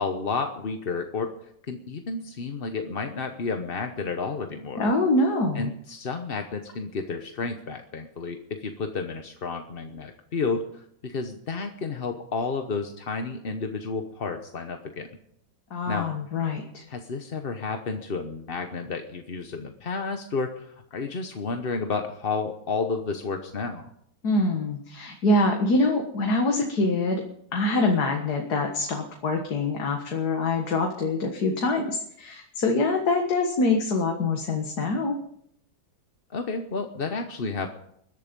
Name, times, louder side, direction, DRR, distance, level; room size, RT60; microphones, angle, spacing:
voice 1, 0.0-1.3 1.7-4.9 5.5-15.1 15.9-16.1 16.9-23.8 36.3-37.7, left 4 dB, 40° left, 6 dB, 0.9 m, -31 dB
voice 2, 4.8-5.7 15.7-16.8 24.2-27.2 27.5-35.2, left 2 dB, 55° left, 2 dB, 2.1 m, -25 dB
21.0 x 12.0 x 5.3 m, 0.71 s
omnidirectional pair, 2.1 m